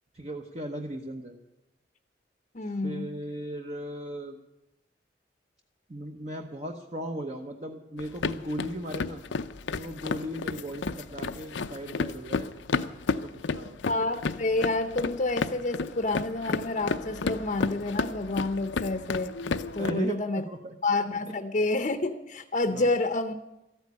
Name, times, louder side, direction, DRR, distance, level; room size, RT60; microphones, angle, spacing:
voice 1, 0.1-1.4 2.7-4.4 5.9-9.2 9.8-12.5 13.1-13.8 19.8-20.7 22.7-22.9, right 1 dB, 35° right, 3 dB, 0.9 m, -37 dB
voice 2, 2.5-3.1 13.9-19.3 19.7-20.4 20.8-23.4, left 2 dB, 40° left, 8 dB, 0.7 m, -28 dB
sound 1, 8.0-19.9, left 4 dB, 90° left, 0.6 m, -32 dB
14.0 x 9.2 x 9.5 m, 0.95 s
head